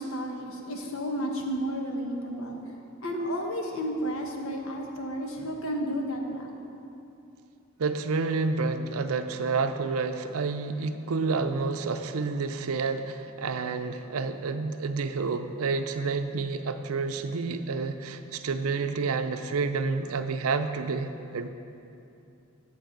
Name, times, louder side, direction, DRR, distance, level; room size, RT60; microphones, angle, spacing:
voice 1, 0.0-2.6 3.0-6.5, equal, 70° left, 1 dB, 1.2 m, -32 dB
voice 2, 7.8-21.5, right 4 dB, 80° right, 9 dB, 0.5 m, -29 dB
10.5 x 7.3 x 5.2 m, 2.7 s
head